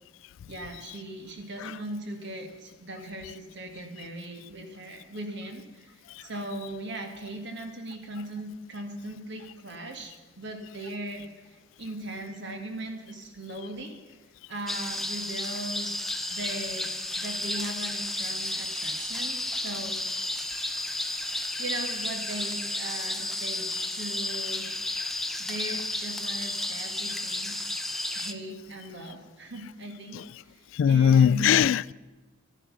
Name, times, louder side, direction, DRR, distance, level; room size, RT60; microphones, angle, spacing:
voice 1, 0.5-14.2 14.5-15.9 16.3-16.9 17.2-20.0 21.6-24.7 25.4-27.6 28.1-31.7, right 1 dB, 65° right, 1.9 m, -39 dB
sound 1, 14.7-28.3, left 1 dB, ahead, 0.6 m, -32 dB
voice 2, 30.7-31.9, left 8 dB, 85° left, 0.3 m, -19 dB
12.0 x 10.0 x 6.1 m
head